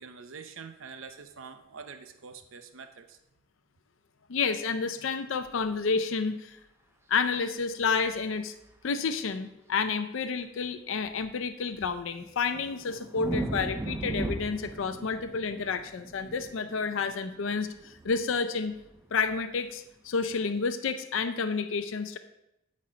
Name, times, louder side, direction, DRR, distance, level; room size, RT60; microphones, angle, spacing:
voice 1, 0.0-3.2, right 5 dB, 75° right, 8 dB, 0.7 m, -45 dB
voice 2, 4.3-6.6 7.1-8.5 8.8-18.7 19.1-22.2, left 5 dB, 70° left, 9 dB, 0.5 m, -30 dB
sound 1, 7.6-8.2 8.6-8.7 11.0-11.3 11.8-18.4 18.7-19.4 20.3-20.5, right 1 dB, 10° right, 0.5 m, -38 dB
8.5 x 4.2 x 5.1 m, 0.88 s
head